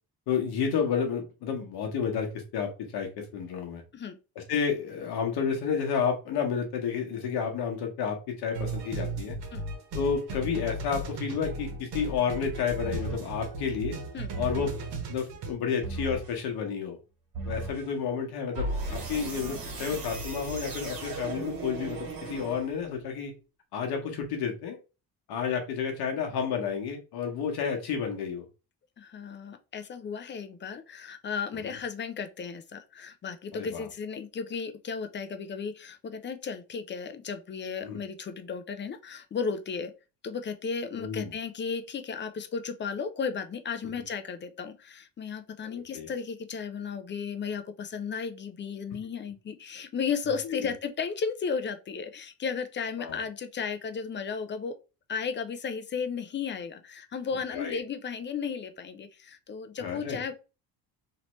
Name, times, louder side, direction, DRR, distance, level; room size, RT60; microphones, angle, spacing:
voice 1, 0.3-3.8 4.5-9.4 9.9-14.0 14.4-14.7 15.1-17.0 17.4-23.3 23.7-24.8 25.3-28.4 31.6-31.7 33.5-33.9 37.8-38.0 40.9-41.3 45.6-46.1 50.4-50.7 53.0-53.2 57.5-57.8 59.8-60.2, left 6 dB, 75° left, 1.1 m, -31 dB
sound 1, 8.5-15.5, right 2 dB, 75° right, 1.2 m, -36 dB
sound 2, 12.8-13.4 14.3-14.9 15.8-16.4 17.3-17.9 18.5-22.9, right 2 dB, 60° right, 1.8 m, -36 dB
voice 2, 29.0-39.9 40.2-54.8 55.1-60.3, left 6 dB, 30° left, 0.5 m, -34 dB
3.1 x 2.9 x 3.0 m
cardioid pair, 115°, 39 cm